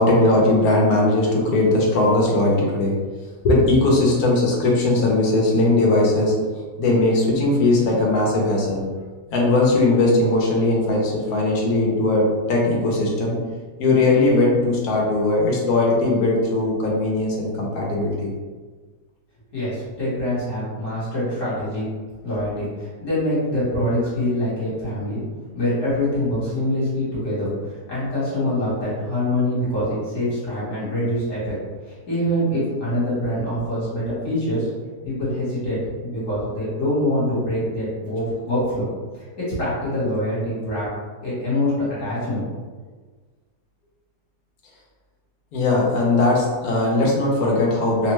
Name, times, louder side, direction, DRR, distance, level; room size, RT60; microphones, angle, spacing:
voice 1, 0.0-2.9 3.4-6.3 6.8-8.8 9.3-13.3 13.8-18.3 45.5-48.1, left 2 dB, 65° left, -2 dB, 1.1 m, -19 dB
voice 2, 19.5-21.8 22.2-25.2 25.5-31.6 31.9-34.7 35.0-38.9 39.1-39.2 39.6-40.9 41.2-41.7 42.0-42.4, left 1 dB, 50° left, -9 dB, 1.4 m, -24 dB
3.3 x 2.1 x 3.0 m, 1.4 s
omnidirectional pair, 1.9 m